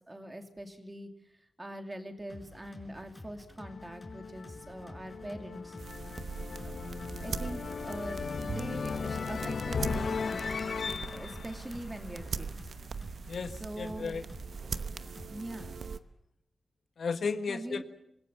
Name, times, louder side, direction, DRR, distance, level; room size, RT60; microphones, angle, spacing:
voice 1, 0.1-1.1 1.6-5.8 6.6-6.7 7.2-10.5 10.9-12.5 13.6-14.1 15.3-15.8 17.5-17.8, right 1 dB, 15° right, 5 dB, 2.7 m, -42 dB
sound 1, 2.3-16.0, left 2 dB, 20° left, 4.7 m, -50 dB
sound 2, 3.6-12.6, left 5 dB, 55° left, 0.8 m, -37 dB
sound 3, 5.8-16.0, right 5 dB, 65° right, 0.9 m, -41 dB
voice 2, 13.3-14.2 14.9-15.3 17.0-17.8, left 5 dB, 75° left, 9 dB, 1.5 m, -35 dB
26.0 x 21.0 x 7.1 m, 0.77 s
wide cardioid pair, 165°, 0 cm